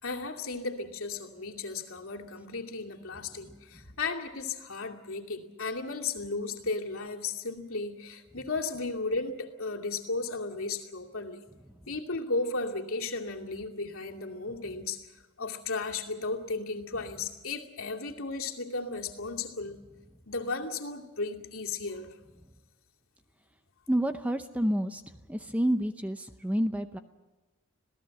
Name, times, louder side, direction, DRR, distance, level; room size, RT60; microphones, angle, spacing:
voice 1, 0.0-11.4 11.9-19.8 20.3-22.2, left 3 dB, 65° left, 1 dB, 2.5 m, -35 dB
voice 2, 23.9-25.0 25.3-27.0, equal, 5° right, 8 dB, 0.7 m, -29 dB
27.0 x 17.5 x 7.7 m, 1.2 s
head